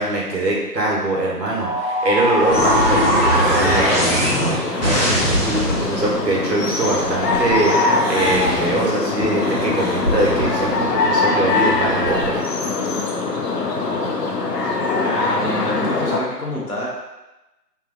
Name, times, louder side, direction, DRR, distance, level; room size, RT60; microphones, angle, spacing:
voice 1, 0.0-4.5 4.8-12.3, right 2 dB, 80° right, -3 dB, 1.1 m, -22 dB
sound 1, 1.5-6.1, equal, 35° left, 0.9 m, -19 dB
sound 2, 2.5-16.2, left 3 dB, 80° left, 0.7 m, -22 dB
sound 3, 3.2-7.6 7.9-12.4, equal, 40° right, 0.5 m, -30 dB
voice 2, 15.0-16.9, left 1 dB, 65° left, -4 dB, 1.1 m, -27 dB
3.2 x 2.3 x 2.5 m, 1.0 s
figure-of-eight pair, 160°, 49 cm